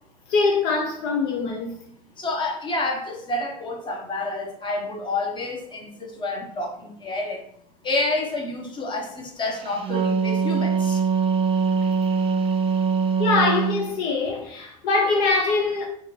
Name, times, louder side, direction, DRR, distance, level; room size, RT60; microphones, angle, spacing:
voice 1, 0.3-1.7 13.2-15.9, left 3 dB, 60° left, 0.8 m, -23 dB
voice 2, 2.2-7.4 7.8-11.0, left 2 dB, 25° left, 1.2 m, -29 dB
Wind instrument woodwind instrument, 9.6-13.8, right 5 dB, 30° right, 0.6 m, -22 dB
5.7 x 2.6 x 3.3 m
hypercardioid pair, 95°, 18 cm